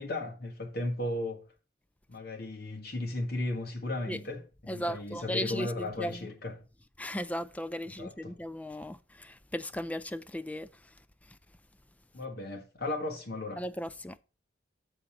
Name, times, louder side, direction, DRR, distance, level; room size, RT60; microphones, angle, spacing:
voice 1, 0.0-1.4 2.1-6.5 8.0-8.3 12.1-13.6, left 2 dB, 55° left, 1.7 m, -35 dB
voice 2, 4.7-6.3 7.0-11.4 13.6-14.2, equal, 10° left, 0.4 m, -37 dB
7.2 x 4.0 x 6.5 m
head